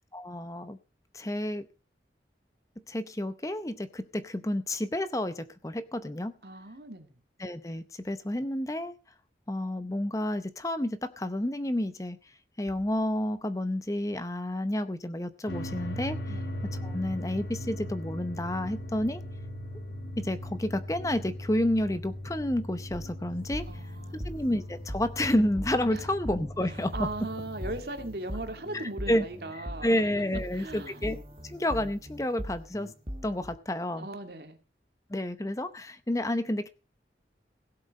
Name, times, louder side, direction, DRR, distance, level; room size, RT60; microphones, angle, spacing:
voice 1, 0.1-0.8 1.1-1.7 2.9-6.4 7.4-8.9 9.5-12.2 12.6-16.2 16.8-19.2 20.2-23.6 24.1-27.1 28.7-29.3 29.5-31.2 31.4-32.9 33.2-34.1 35.1-36.7, left 1 dB, 20° left, 12 dB, 0.7 m, -30 dB
voice 2, 6.4-7.2 16.3-16.5 23.7-24.4 25.9-26.0 26.8-30.0 30.3-31.0 34.0-34.6, right 2 dB, 65° right, 7 dB, 2.2 m, -38 dB
sound 1, 15.5-27.8, left 1 dB, 70° left, 1.4 m, -39 dB
sound 2, 22.9-33.6, equal, 30° right, 1.8 m, -41 dB
17.0 x 7.9 x 5.3 m, 0.32 s
head